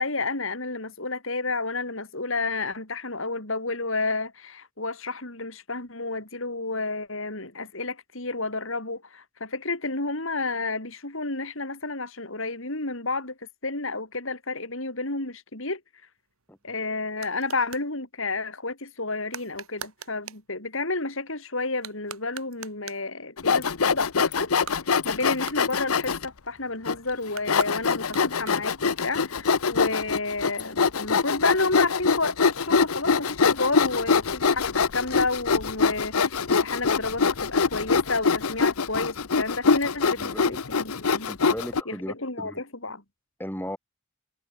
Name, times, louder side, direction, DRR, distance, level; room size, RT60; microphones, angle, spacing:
voice 1, 0.0-13.3 13.6-15.8 16.6-24.5 25.0-41.3 41.9-43.0, left 3 dB, 65° left, 4.5 m, -31 dB
sound 1, 16.2-17.9 19.3-20.5 21.7-23.2 24.5-26.3 27.3-28.9, right 7 dB, 75° right, 4.1 m, -43 dB
Sawing, 23.4-26.3 26.9-27.0 27.5-41.8, left 5 dB, 85° left, 0.9 m, -24 dB
voice 2, 40.2-40.6 41.3-42.6 43.4-43.8, equal, 10° left, 7.8 m, -36 dB
head